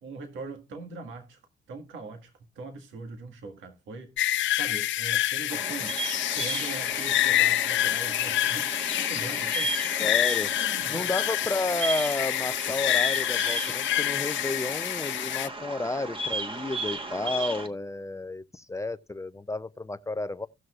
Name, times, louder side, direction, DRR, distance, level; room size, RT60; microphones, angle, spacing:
voice 1, 0.0-1.4 1.7-4.1 4.5-6.0 6.3-10.1 10.6-11.1, right 3 dB, 75° right, 1.8 m, -41 dB
sound 1, 4.2-15.5, left 13 dB, 70° left, 0.5 m, -27 dB
Bird vocalization bird call bird song, 5.5-17.7, right 3 dB, 25° right, 1.4 m, -35 dB
voice 2, 10.0-10.5 10.9-20.5, left 2 dB, 15° left, 0.5 m, -31 dB
17.5 x 6.3 x 2.4 m
cardioid pair, 90°, 20 cm